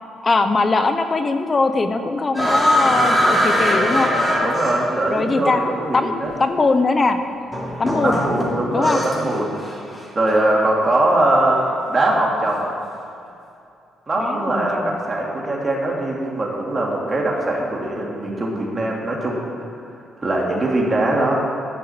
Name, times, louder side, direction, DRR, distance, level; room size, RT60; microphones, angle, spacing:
voice 1, 0.2-4.1 5.1-5.6 5.9-7.2 7.8-8.2 8.7-9.0 14.2-14.9, left 3 dB, 30° left, 8 dB, 0.9 m, -20 dB
sound 1, 2.3-5.2 6.3-6.4 7.5-9.3 9.6-10.0, equal, 5° left, 3.2 m, -20 dB
voice 2, 4.4-6.3 8.0-9.5 10.1-11.6 11.9-12.6 14.1-19.4 20.2-21.4, right 1 dB, 25° right, -3 dB, 2.7 m, -21 dB
12.0 x 5.6 x 8.7 m, 2.6 s
cardioid pair, 90°, 0 cm